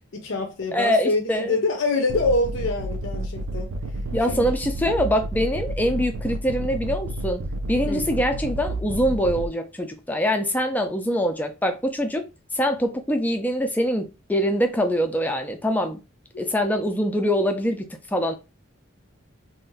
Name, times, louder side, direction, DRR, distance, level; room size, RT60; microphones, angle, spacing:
voice 1, 0.1-3.7 4.3-4.5 7.8-8.1 16.3-16.4, left 2 dB, 70° left, 0.6 m, -25 dB
voice 2, 0.7-1.5 4.1-7.4 7.7-12.3 12.5-16.0 16.4-18.4, equal, 10° left, 0.4 m, -24 dB
sound 1, 2.1-9.5, right 1 dB, 80° right, 0.4 m, -30 dB
2.5 x 2.1 x 3.8 m
head